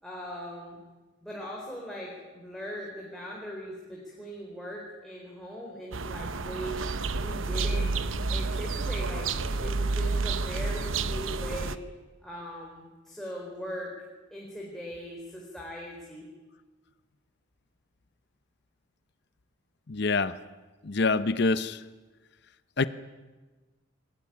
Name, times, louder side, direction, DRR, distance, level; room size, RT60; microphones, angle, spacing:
voice 1, 0.0-0.8 1.2-6.8 7.2-7.9 8.3-11.8 12.2-13.9 14.3-16.3, equal, ahead, -3 dB, 4.4 m, -40 dB
sound 1, 5.9-11.8, right 3 dB, 85° right, 1.0 m, -30 dB
voice 2, 19.9-20.3 20.8-21.8 22.8-22.9, left 3 dB, 55° left, 13 dB, 0.8 m, -25 dB
23.0 x 19.5 x 9.6 m, 1.3 s
head